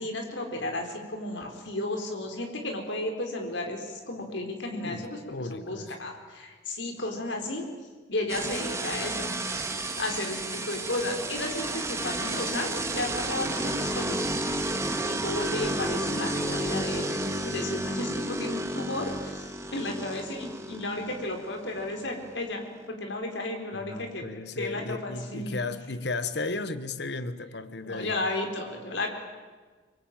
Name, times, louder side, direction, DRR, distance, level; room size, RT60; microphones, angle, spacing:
voice 1, 0.0-5.2 5.5-7.7 8.1-14.2 15.0-19.5 19.7-24.2 24.6-25.6 27.8-29.1, left 2 dB, 85° left, 4.2 m, -33 dB
voice 2, 4.8-6.0 23.7-28.2, left 3 dB, 65° left, 1.2 m, -35 dB
sound 1, 8.3-22.8, right 1 dB, 15° right, 1.8 m, -32 dB
26.5 x 22.0 x 9.0 m
head